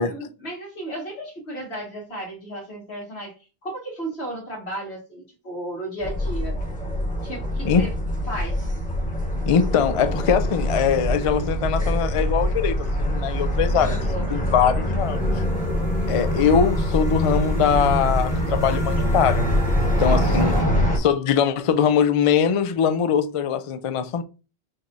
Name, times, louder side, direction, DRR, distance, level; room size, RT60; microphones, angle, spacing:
voice 1, 0.0-3.3 3.6-6.6 7.2-7.9 8.3-8.6 13.7-14.2, right 1 dB, 90° left, 2.0 m, -34 dB
sound 1, 6.0-21.0, equal, 10° left, 1.1 m, -24 dB
voice 2, 9.5-14.0 14.3-15.4 16.1-19.4 20.0-20.6 20.9-24.2, left 7 dB, 50° left, 0.4 m, -22 dB
sound 2, 15.0-20.6, right 1 dB, 90° right, 1.1 m, -39 dB
5.8 x 3.1 x 2.6 m
omnidirectional pair, 1.0 m